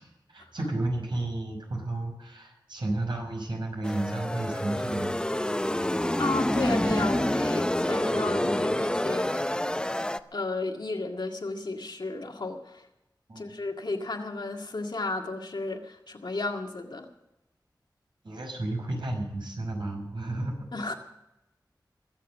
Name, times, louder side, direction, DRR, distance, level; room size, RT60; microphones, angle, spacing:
voice 1, 0.0-5.2 13.3-13.6 18.2-20.9, right 2 dB, 80° right, 0 dB, 5.6 m, -32 dB
sound 1, 3.8-10.2, left 1 dB, 10° left, 0.6 m, -27 dB
voice 2, 6.2-9.3 10.3-12.8 13.4-17.1 20.7-20.9, left 3 dB, 70° left, 2 dB, 2.0 m, -33 dB
22.0 x 7.5 x 7.4 m, 0.89 s
wide cardioid pair, 75°, 8 cm